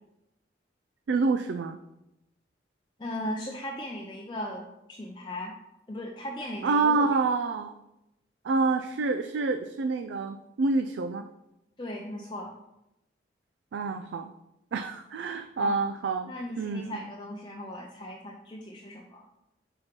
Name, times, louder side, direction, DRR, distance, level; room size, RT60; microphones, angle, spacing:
voice 1, 1.1-1.8 6.6-7.7 8.4-11.2 13.7-14.3 14.7-17.0, right 3 dB, 80° right, 8 dB, 0.3 m, -27 dB
voice 2, 3.0-5.5 5.9-7.1 11.8-12.5 15.6-15.7 16.3-19.2, left 1 dB, 25° left, -1 dB, 0.5 m, -37 dB
5.0 x 4.4 x 5.8 m, 0.90 s
head